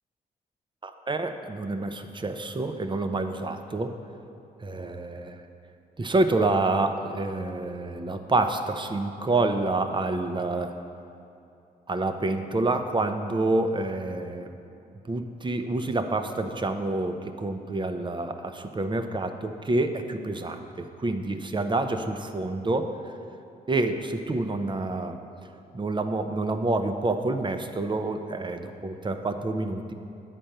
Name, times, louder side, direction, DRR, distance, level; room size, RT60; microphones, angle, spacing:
voice 1, 0.8-3.9 4.6-5.4 6.0-10.7 11.9-14.5 15.0-22.9 23.7-25.2 25.7-29.9, right 2 dB, 25° right, 7 dB, 0.7 m, -28 dB
9.0 x 4.3 x 6.5 m, 2.7 s
supercardioid pair, 50°, 18 cm